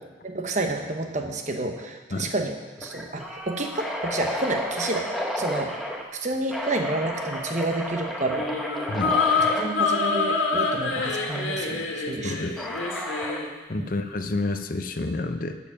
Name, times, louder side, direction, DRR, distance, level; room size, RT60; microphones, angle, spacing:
voice 1, 0.2-5.1 5.4-5.7 6.1-8.5 9.6-12.3 13.8-13.9, right 2 dB, 35° right, 4 dB, 1.0 m, -29 dB
sound 1, 1.5-1.8 2.1-2.2 2.8-6.0 6.5-9.7 11.0-11.4 12.6-13.5, equal, ahead, 1.0 m, -32 dB
sound 2, 8.2-13.5, left 4 dB, 90° left, 1.8 m, -26 dB
voice 2, 8.9-9.5 12.2-12.7 13.7-15.6, left 2 dB, 45° left, 8 dB, 0.6 m, -30 dB
12.0 x 7.2 x 5.8 m, 1.3 s
head